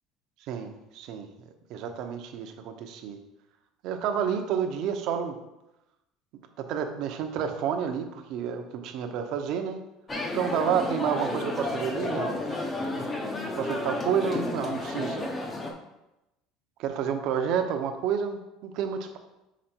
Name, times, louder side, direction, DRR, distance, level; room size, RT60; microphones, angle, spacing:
voice 1, 0.5-1.3 1.7-3.2 3.8-5.4 6.6-9.8 10.3-12.4 13.6-15.2 16.8-19.2, right 8 dB, 50° right, 6 dB, 0.7 m, -30 dB
sound 1, 10.1-15.7, left 2 dB, 15° left, 0.7 m, -32 dB
5.0 x 5.0 x 4.4 m, 0.93 s
cardioid pair, 165°, 0 cm